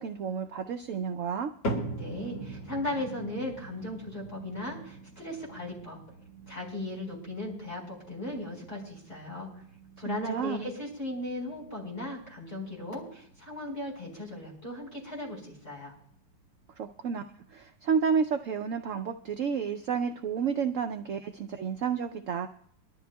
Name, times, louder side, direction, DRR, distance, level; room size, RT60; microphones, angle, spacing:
voice 1, 0.0-1.5 10.1-10.7 16.8-17.2 17.5-22.5, right 6 dB, 75° right, 6 dB, 0.7 m, -31 dB
sound 1, 1.6-18.0 18.3-18.8 19.4-19.5 20.3-20.4, right 1 dB, 85° left, 2.8 m, -43 dB
voice 2, 1.9-6.0 6.5-9.5 10.0-15.9, left 1 dB, 30° left, -3 dB, 5.1 m, -37 dB
24.0 x 13.0 x 2.3 m, 0.65 s
omnidirectional pair, 2.0 m